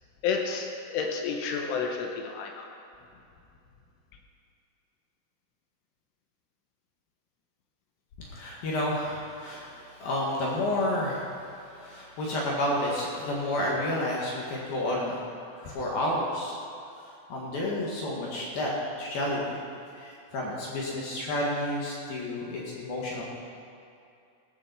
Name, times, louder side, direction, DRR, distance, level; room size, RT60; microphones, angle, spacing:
voice 1, 0.2-2.7, left 5 dB, 80° left, 2 dB, 3.4 m, -30 dB
voice 2, 8.3-16.6 17.3-18.7 19.0-19.4 20.0-23.2, left 1 dB, 60° left, -4 dB, 3.0 m, -30 dB
16.0 x 7.1 x 6.9 m, 2.6 s
omnidirectional pair, 5.8 m